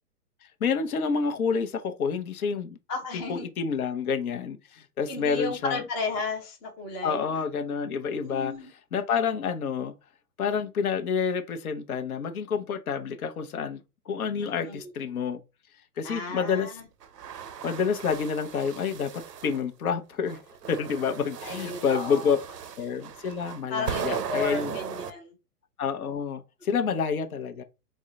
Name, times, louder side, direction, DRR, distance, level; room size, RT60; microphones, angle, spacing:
voice 1, 0.6-2.8 3.3-5.8 7.0-8.5 8.9-9.9 10.4-13.8 14.1-15.4 16.0-16.7 17.6-20.4 20.7-22.4 22.8-24.8 25.8-27.6, left 6 dB, 65° left, 0.8 m, -28 dB
voice 2, 2.9-3.4 5.1-7.4 8.2-8.7 14.4-14.9 16.0-16.8 21.4-22.4 23.7-25.3, left 3 dB, 15° left, 0.4 m, -34 dB
sound 1, 17.0-19.6 20.2-25.1, right 8 dB, 85° right, 0.7 m, -37 dB
3.6 x 2.1 x 3.7 m
hypercardioid pair, 120°, 47 cm